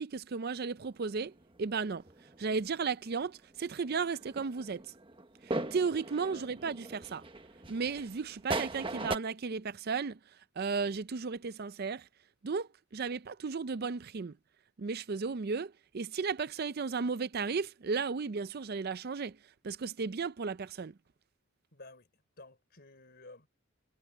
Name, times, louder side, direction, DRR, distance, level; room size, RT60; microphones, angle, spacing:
voice 1, 0.0-2.0 2.4-4.8 5.4-7.2 7.7-10.2 10.6-12.1 12.4-14.3 14.8-19.4 19.6-20.9, right 5 dB, 45° right, 0.5 m, -34 dB
sound 1, 0.8-2.8 3.1-3.6 3.8-9.2, right 2 dB, 25° right, 1.2 m, -39 dB
voice 2, 21.7-22.1 22.4-23.5, left 2 dB, 45° left, 4.1 m, -53 dB
head